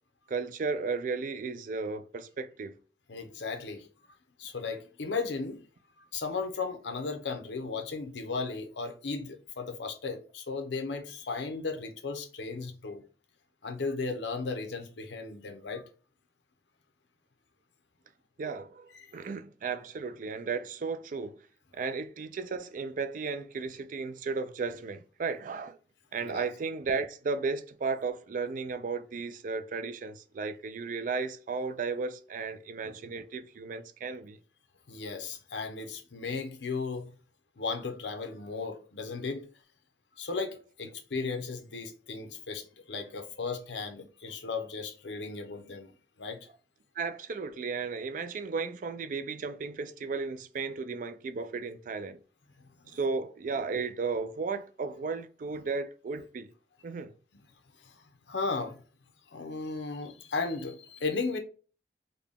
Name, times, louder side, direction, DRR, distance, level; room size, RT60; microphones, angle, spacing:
voice 1, 0.3-2.7 18.4-21.4 21.7-25.8 26.1-34.4 47.0-52.2 52.9-56.5 56.8-57.1, right 4 dB, 50° right, 0.3 m, -34 dB
voice 2, 3.1-3.9 4.4-5.6 6.1-13.0 13.6-15.8 26.2-26.4 34.9-37.1 37.6-39.5 40.2-45.9 46.2-46.4 52.6-53.0 57.3-57.4 57.8-58.8 59.3-61.4, left 4 dB, 85° left, 0.7 m, -35 dB
3.8 x 2.2 x 3.4 m
head